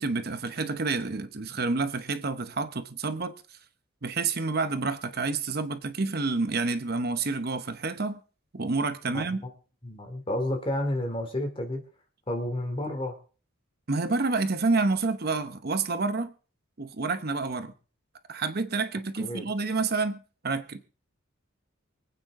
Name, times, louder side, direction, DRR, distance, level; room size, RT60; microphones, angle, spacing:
voice 1, 0.0-3.6 4.0-8.2 8.5-9.4 13.9-16.3 16.8-17.7 18.3-20.8, right 3 dB, 50° right, 0.9 m, -29 dB
voice 2, 9.8-11.8 12.3-13.2 19.2-19.5, left 1 dB, 25° left, 2.7 m, -31 dB
25.0 x 9.0 x 3.7 m
head